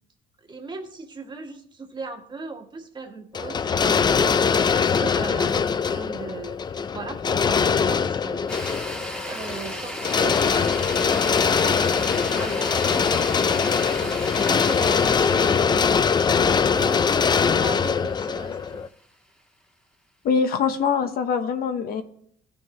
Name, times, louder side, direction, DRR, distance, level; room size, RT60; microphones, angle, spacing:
voice 1, 0.4-8.5 9.2-13.3 14.0-16.0 16.6-17.0 17.3-18.8, right 4 dB, 25° right, 3 dB, 1.5 m, -39 dB
sound 1, 3.3-18.9, left 6 dB, 25° left, 0.4 m, -22 dB
sound 2, 8.5-18.8, equal, 5° left, 1.5 m, -36 dB
voice 2, 20.2-22.0, left 6 dB, 60° left, 8 dB, 0.9 m, -23 dB
15.5 x 6.7 x 3.1 m, 0.63 s
cardioid pair, 110°, 17 cm